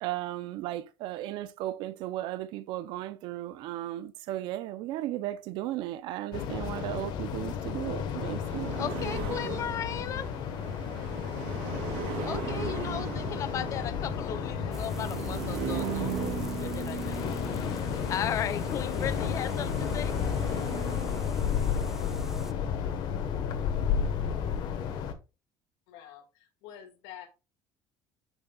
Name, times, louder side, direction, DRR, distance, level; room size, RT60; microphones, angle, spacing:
voice 1, 0.0-8.7, right 14 dB, 65° right, 0.7 m, -35 dB
sound 1, 6.3-25.1, left 7 dB, 55° left, 1.4 m, -32 dB
sound 2, 8.4-21.9, right 8 dB, 80° right, 3.0 m, -38 dB
voice 2, 8.8-10.3 12.2-16.1 16.6-17.4 17.9-20.2, left 9 dB, 35° left, 0.8 m, -36 dB
voice 3, 14.5-14.9 16.6-17.0 25.9-27.3, left 10 dB, 90° left, 2.2 m, -49 dB
sound 3, 14.7-22.5, right 1 dB, 5° right, 0.4 m, -44 dB
9.0 x 6.3 x 2.4 m
cardioid pair, 165°, 9 cm